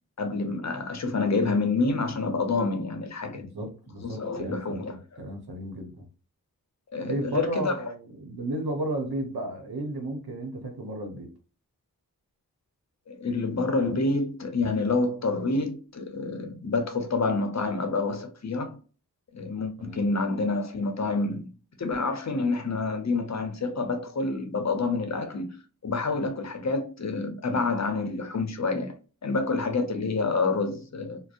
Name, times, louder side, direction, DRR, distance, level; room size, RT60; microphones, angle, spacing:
voice 1, 0.2-3.5 4.0-5.3 6.9-7.7 13.1-18.8 19.3-21.5 21.8-25.6 25.8-28.9 29.2-31.2, left 3 dB, 45° left, 0.6 m, -28 dB
voice 2, 3.3-6.1 7.0-11.3 19.8-20.1, right 1 dB, 80° right, 0.9 m, -33 dB
2.6 x 2.0 x 2.4 m
cardioid pair, 40°, 37 cm